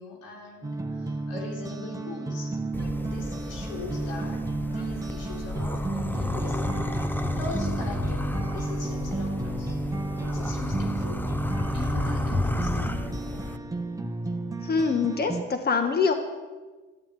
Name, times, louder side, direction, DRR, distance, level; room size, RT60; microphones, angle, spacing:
voice 1, 0.0-2.5 3.0-9.8 10.1-11.3 11.7-13.0, left 3 dB, 90° left, -1 dB, 3.9 m, -41 dB
sound 1, 0.6-15.4, right 2 dB, 10° right, 1.4 m, -32 dB
sound 2, 2.7-13.6, left 2 dB, 5° left, 0.8 m, -32 dB
voice 2, 14.6-16.1, left 5 dB, 30° left, 6 dB, 1.5 m, -25 dB
13.5 x 8.6 x 9.3 m, 1.3 s
cardioid pair, 90°, 30 cm